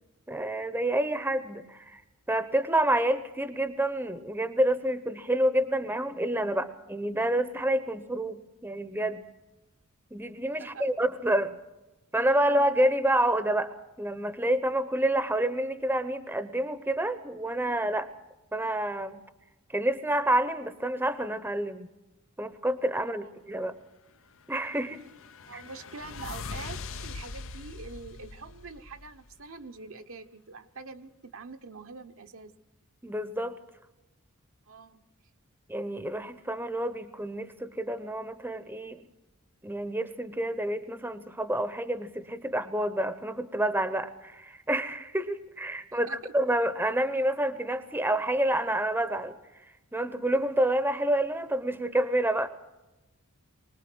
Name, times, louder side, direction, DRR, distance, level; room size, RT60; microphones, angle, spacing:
voice 1, 0.3-2.0 2.3-9.2 10.1-11.6 12.1-18.1 18.5-19.2 19.7-21.9 22.4-23.7 24.5-25.0 25.5-25.6 33.0-33.6 35.7-39.1 39.6-49.3 49.9-52.5, right 1 dB, 10° right, 11 dB, 0.8 m, -28 dB
sound 1, 24.5-29.4, left 4 dB, 65° left, 0.7 m, -42 dB
voice 2, 25.5-32.5 34.7-35.0 45.9-46.3, right 4 dB, 65° right, 7 dB, 1.0 m, -45 dB
24.0 x 19.0 x 6.2 m, 1.0 s
head